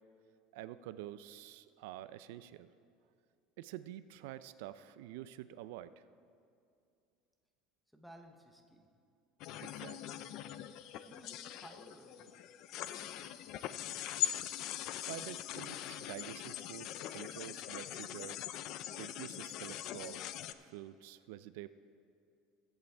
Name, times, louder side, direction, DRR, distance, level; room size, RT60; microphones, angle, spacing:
voice 1, 0.5-2.7 3.6-6.0 9.6-10.0 15.0-18.4 18.9-20.2 20.6-21.7, right 13 dB, 75° right, 13 dB, 0.3 m, -48 dB
voice 2, 7.9-8.9 11.0-12.3 12.7-13.4, equal, ahead, 4 dB, 0.8 m, -57 dB
sound 1, 9.4-20.5, left 12 dB, 45° left, 0.3 m, -42 dB
21.0 x 8.0 x 3.4 m, 2.5 s
cardioid pair, 175°, 0 cm